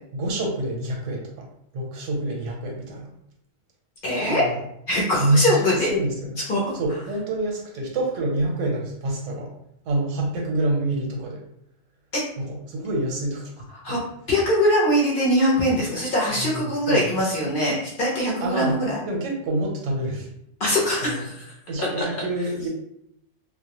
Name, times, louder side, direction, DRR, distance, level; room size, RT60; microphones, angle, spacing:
voice 1, 0.1-1.5 1.7-3.1 4.3-4.6 5.2-6.4 6.7-9.5 9.9-11.4 12.4-13.5 13.9-14.0 16.4-17.3 18.4-20.3 21.0-21.2 21.7-22.7, right 1 dB, 80° right, 0 dB, 1.0 m, -27 dB
voice 2, 4.0-4.4 4.9-5.9 6.5-6.8 12.1-12.2 13.8-14.0 14.3-19.0 20.6-21.5 21.8-22.0, equal, 55° left, -4 dB, 0.6 m, -22 dB
2.2 x 2.1 x 2.8 m, 0.74 s
omnidirectional pair, 1.3 m